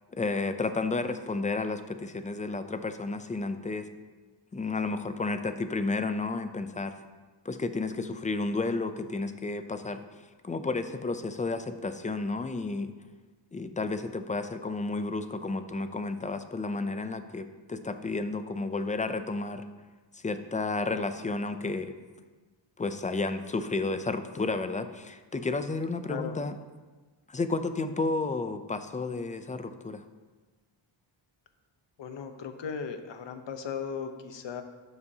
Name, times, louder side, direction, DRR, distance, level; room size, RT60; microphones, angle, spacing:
voice 1, 0.1-3.9 4.5-6.9 7.4-10.0 10.4-12.9 13.5-19.6 20.1-21.9 22.8-26.6 27.3-30.0, left 3 dB, 20° left, 9 dB, 0.3 m, -32 dB
voice 2, 32.0-34.6, left 6 dB, 60° left, 7 dB, 0.9 m, -37 dB
12.0 x 8.0 x 2.8 m, 1.3 s
wide cardioid pair, 155°, 48 cm